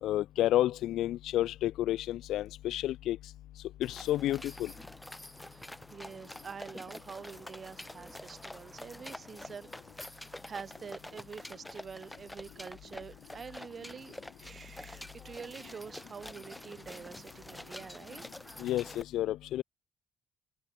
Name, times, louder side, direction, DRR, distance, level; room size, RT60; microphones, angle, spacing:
voice 1, 0.0-3.2 3.8-4.7 18.6-19.6, left 14 dB, 85° left, 0.4 m, -30 dB
sound 1, 3.8-19.0, left 1 dB, 5° left, 2.7 m, -48 dB
voice 2, 5.4-9.7 10.0-18.2, right 6 dB, 40° right, 1.6 m, -46 dB
cardioid pair, 90°, 0 cm